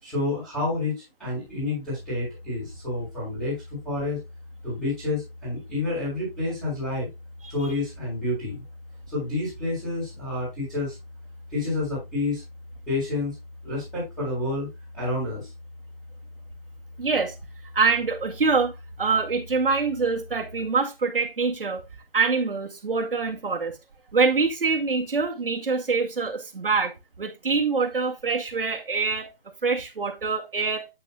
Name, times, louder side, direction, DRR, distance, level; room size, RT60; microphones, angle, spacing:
voice 1, 0.0-4.2 4.6-7.1 7.5-8.6 9.1-11.0 11.5-12.4 12.9-13.3 13.6-14.7 14.9-15.5, left 2 dB, ahead, 6.0 m, -29 dB
sound 1, 1.9-20.7, left 2 dB, 30° left, 5.3 m, -44 dB
voice 2, 17.0-17.3 17.7-18.7 19.0-21.8 22.1-23.7 24.1-26.9 27.2-29.3 29.6-30.9, right 4 dB, 65° right, 2.1 m, -25 dB
8.7 x 8.7 x 2.3 m
hypercardioid pair, 175°, 29 cm